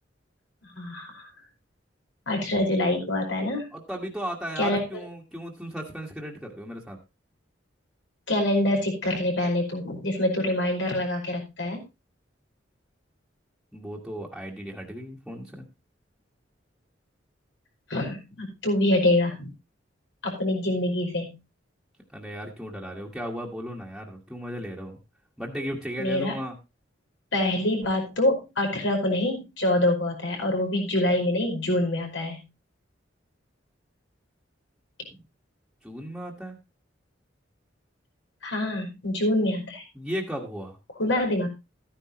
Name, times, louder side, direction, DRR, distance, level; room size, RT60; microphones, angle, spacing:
voice 1, 0.7-1.3 2.3-3.6 4.6-4.8 8.3-11.8 17.9-19.5 20.2-21.3 26.0-26.3 27.3-32.4 38.4-39.8 41.0-41.5, left 1 dB, 75° left, 1 dB, 5.1 m, -25 dB
voice 2, 3.7-7.0 13.7-15.7 22.1-25.0 25.4-26.6 35.1-35.2 35.8-36.6 39.9-40.8, equal, ahead, -2 dB, 1.7 m, -35 dB
13.5 x 10.0 x 3.0 m, 0.26 s
head